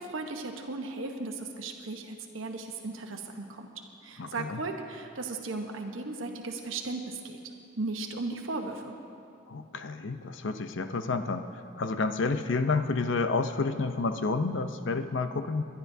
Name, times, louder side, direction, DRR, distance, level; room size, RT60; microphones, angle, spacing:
voice 1, 0.0-3.7 4.0-7.4 7.8-9.0, right 3 dB, 80° right, 3 dB, 1.0 m, -36 dB
voice 2, 4.2-4.6 9.5-11.5 11.8-15.6, left 3 dB, 65° left, 9 dB, 0.6 m, -30 dB
25.5 x 11.0 x 2.7 m, 2.5 s
head